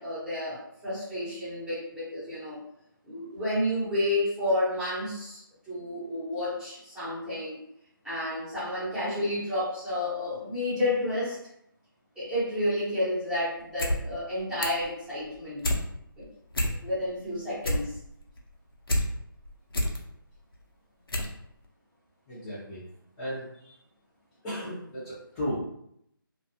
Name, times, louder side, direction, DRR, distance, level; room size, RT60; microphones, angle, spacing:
voice 1, 0.0-2.6 3.0-5.4 5.7-7.6 8.0-11.4 12.2-15.7 16.2-16.3 16.8-17.9, left 1 dB, 5° right, -14 dB, 0.9 m, -30 dB
sound 1, 13.6-14.0 14.3-14.9 15.3-15.8 16.2-16.3 16.5-17.1 17.4-19.0 19.4-20.0 20.5-20.6 21.1-21.4 21.6-21.7, left 1 dB, 80° left, 0.7 m, -28 dB
voice 2, 22.3-22.8 23.2-23.7 24.4-25.6, equal, 15° left, -11 dB, 0.6 m, -35 dB
2.5 x 2.4 x 2.7 m, 0.75 s
figure-of-eight pair, 160°, 12 cm